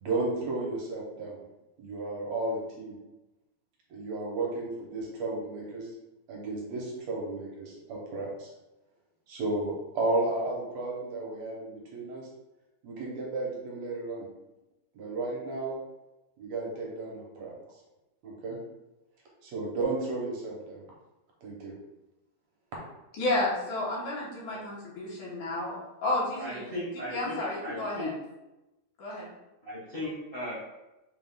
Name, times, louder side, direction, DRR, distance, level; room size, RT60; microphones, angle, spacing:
voice 1, 0.0-1.4 1.8-3.0 3.9-5.9 6.3-8.5 9.3-12.3 12.8-14.3 15.0-15.8 16.4-17.5 18.2-18.6 19.4-20.8 21.4-21.7, right 2 dB, 70° right, -3 dB, 2.2 m, -33 dB
voice 2, 23.2-26.7 27.1-28.2 29.0-29.3, left 2 dB, 80° left, -5 dB, 2.7 m, -31 dB
voice 3, 26.4-28.2 29.6-30.5, left 1 dB, 30° left, -9 dB, 1.0 m, -37 dB
5.8 x 3.7 x 2.4 m, 0.99 s
omnidirectional pair, 3.4 m